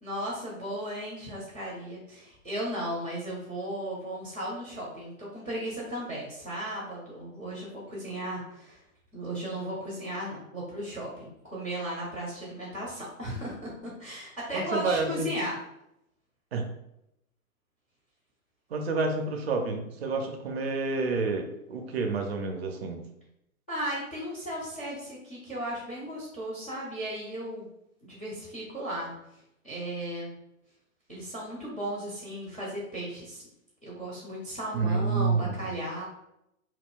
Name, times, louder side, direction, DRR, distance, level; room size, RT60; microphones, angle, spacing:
voice 1, 0.0-8.8 9.1-13.7 14.0-15.6 23.7-27.7 28.0-29.1 29.6-30.4 31.1-33.4 33.8-36.0, right 1 dB, 10° left, -15 dB, 0.3 m, -35 dB
voice 2, 14.5-15.3 16.5-16.7 18.7-23.0 34.7-35.6, right 4 dB, 50° right, 4 dB, 0.5 m, -29 dB
2.3 x 2.1 x 3.5 m, 0.82 s
figure-of-eight pair, 110°, 41 cm